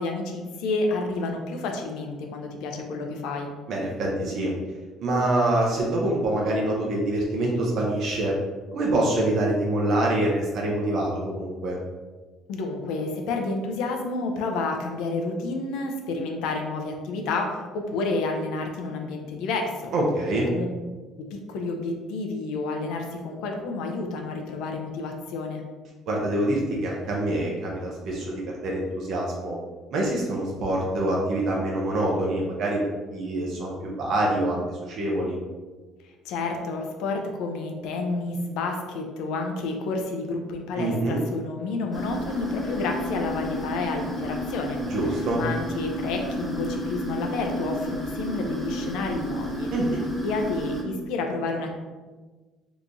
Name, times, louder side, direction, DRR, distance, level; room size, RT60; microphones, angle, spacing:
voice 1, 0.0-3.5 12.5-19.9 20.5-20.7 21.3-25.6 36.2-44.8 45.4-49.7 50.2-51.8, left 3 dB, 80° left, 3 dB, 0.5 m, -30 dB
voice 2, 3.7-4.5 5.0-8.3 8.7-11.8 19.9-20.5 26.1-29.6 29.9-32.8 33.1-35.4 40.7-41.2 44.9-45.4 49.7-50.0, right 1 dB, 55° right, -2 dB, 0.6 m, -25 dB
sound 1, 41.9-50.8, equal, ahead, 0.7 m, -31 dB
2.9 x 2.5 x 3.6 m, 1.3 s
cardioid pair, 140°, 0 cm